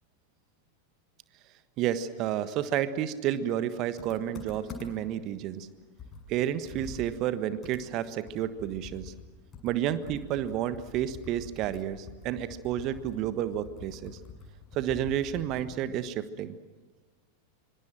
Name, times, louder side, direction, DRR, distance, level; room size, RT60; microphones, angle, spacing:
voice 1, 1.8-5.7 6.3-9.1 9.6-14.2 14.7-16.6, right 11 dB, 40° right, 12 dB, 1.4 m, -31 dB
Computer keyboard, 4.0-5.2 5.6-5.7 6.0-9.3 9.5-16.0, left 4 dB, 25° left, 7.1 m, -46 dB
25.0 x 25.0 x 7.6 m, 1.3 s
figure-of-eight pair, 90°, 0 cm